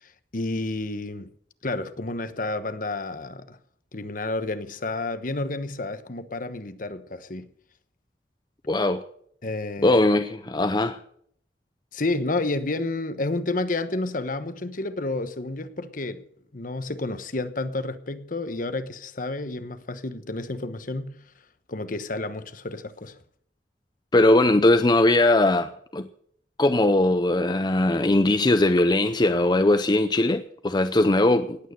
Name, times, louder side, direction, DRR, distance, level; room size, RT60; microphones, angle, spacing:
voice 1, 0.0-1.3 1.6-3.6 3.9-7.5 9.4-10.0 11.9-16.2 16.5-21.2 21.7-23.2, left 2 dB, 50° left, 1.1 m, -30 dB
voice 2, 8.7-9.0 9.8-11.0 24.1-26.1 26.6-31.6, left 2 dB, 25° left, 0.6 m, -20 dB
18.0 x 9.2 x 6.7 m
head